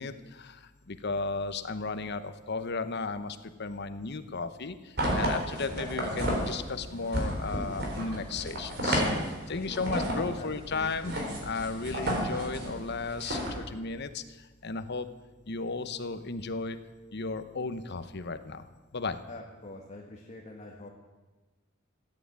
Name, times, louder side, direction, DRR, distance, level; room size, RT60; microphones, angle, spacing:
voice 1, 0.0-11.2 11.4-15.1 15.5-16.8 17.1-18.7 18.9-19.2, left 4 dB, 55° left, 11 dB, 1.0 m, -35 dB
sound 1, 5.0-13.5, equal, 55° right, 3.9 m, -32 dB
voice 2, 9.4-10.1 10.4-11.2 19.3-20.9, left 2 dB, 35° left, -1 dB, 1.7 m, -45 dB
15.0 x 9.7 x 8.7 m, 1.2 s
head